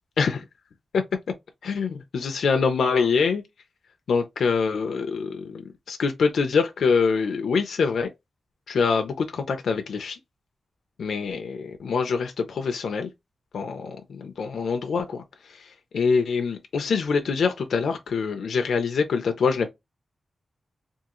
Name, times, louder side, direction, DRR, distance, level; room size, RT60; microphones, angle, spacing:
voice 1, 1.6-3.4 4.1-5.6 5.9-8.1 8.7-10.2 11.0-13.1 13.5-19.7, left 5 dB, 85° left, 0.6 m, -25 dB
3.6 x 2.5 x 2.9 m
wide cardioid pair, 155°, 0 cm